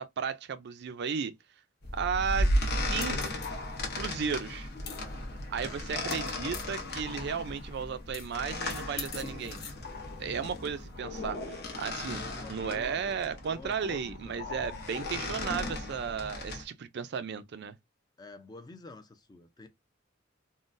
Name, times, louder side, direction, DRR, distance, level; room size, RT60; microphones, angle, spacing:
voice 1, 0.0-1.3 1.9-2.5 2.9-3.3 3.9-4.7 5.5-9.7 10.2-12.2 12.5-17.7, right 6 dB, 60° right, 0.4 m, -34 dB
sound 1, 1.8-16.6, left 1 dB, 55° left, 0.9 m, -35 dB
voice 2, 12.1-14.5 18.2-19.7, left 2 dB, 20° left, 0.5 m, -49 dB
3.7 x 2.1 x 2.5 m
head